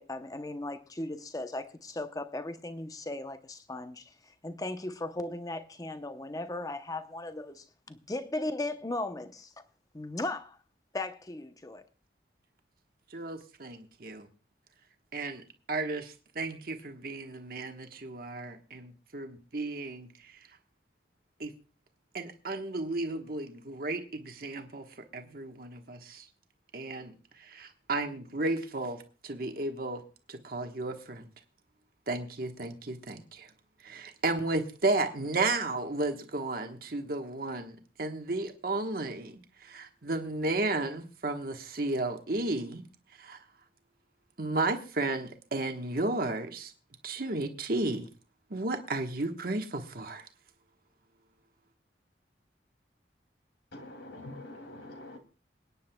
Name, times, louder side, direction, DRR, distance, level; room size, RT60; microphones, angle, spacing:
voice 1, 0.0-9.5 9.9-10.6 10.9-11.8, left 2 dB, 20° left, 0.8 m, -37 dB
voice 2, 13.1-14.3 15.1-20.3 21.4-21.5 22.1-24.8 25.1-26.3 26.7-30.0 30.3-31.3 32.1-33.5 33.8-42.8 43.2-43.4 44.4-46.7 47.0-48.1 48.5-50.3, right 2 dB, 55° right, 1.3 m, -33 dB
voice 3, 53.7-55.2, left 1 dB, 85° left, 2.7 m, -45 dB
27.5 x 9.6 x 2.3 m
head